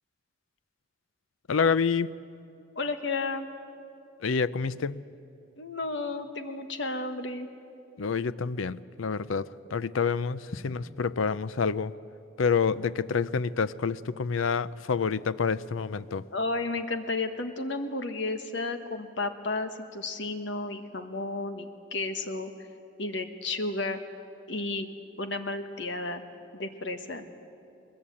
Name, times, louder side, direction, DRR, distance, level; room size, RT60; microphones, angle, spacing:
voice 1, 1.5-2.1 4.2-5.0 8.0-11.9 12.4-16.3, left 5 dB, 80° left, 17 dB, 0.5 m, -28 dB
voice 2, 2.7-3.5 5.6-7.5 16.3-22.5 23.0-24.0 24.5-24.9 25.2-26.2 26.6-27.2, left 3 dB, 60° left, 7 dB, 1.5 m, -32 dB
21.5 x 21.5 x 8.5 m, 2.7 s
head